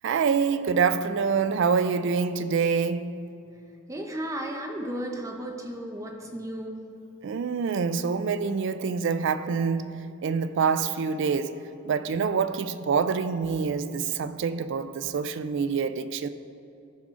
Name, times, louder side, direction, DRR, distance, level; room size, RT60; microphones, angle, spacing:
voice 1, 0.0-3.3 7.2-16.3, right 5 dB, 60° right, 0.3 m, -26 dB
voice 2, 3.9-6.8, right 1 dB, 15° right, 0.7 m, -34 dB
14.0 x 4.9 x 3.7 m
head